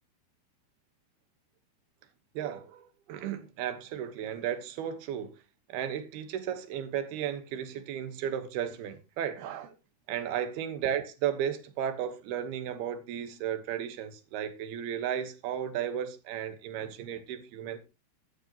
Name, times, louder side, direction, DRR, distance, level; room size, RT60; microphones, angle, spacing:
voice 1, 2.3-5.4 5.7-9.7 10.1-17.8, right 9 dB, 75° right, 3.1 m, -34 dB
13.0 x 12.0 x 2.9 m
omnidirectional pair, 4.7 m